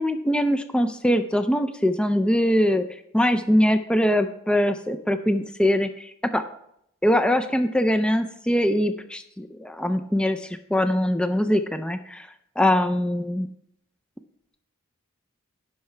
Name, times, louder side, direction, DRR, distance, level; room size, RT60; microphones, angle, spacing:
voice 1, 0.0-2.8 3.1-6.4 7.0-12.3 12.6-13.5, equal, 5° left, 8 dB, 0.3 m, -22 dB
16.0 x 5.8 x 3.3 m, 0.75 s
head